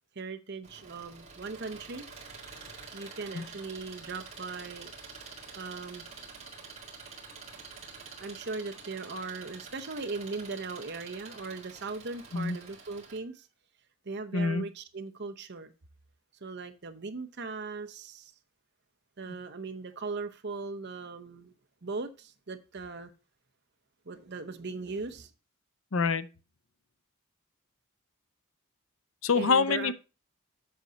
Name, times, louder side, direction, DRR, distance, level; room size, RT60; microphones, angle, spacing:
voice 1, 0.1-2.1 2.9-4.9 5.5-6.1 8.2-13.5 14.0-15.7 16.4-18.3 19.2-21.5 21.8-23.1 24.1-25.3 29.3-29.9, right 3 dB, 50° right, 0.8 m, -39 dB
Engine, 0.6-13.2, right 4 dB, 30° right, 2.1 m, -47 dB
voice 2, 14.3-14.6 25.9-26.3 29.2-29.9, left 4 dB, 65° left, 0.6 m, -26 dB
8.2 x 6.3 x 4.0 m
head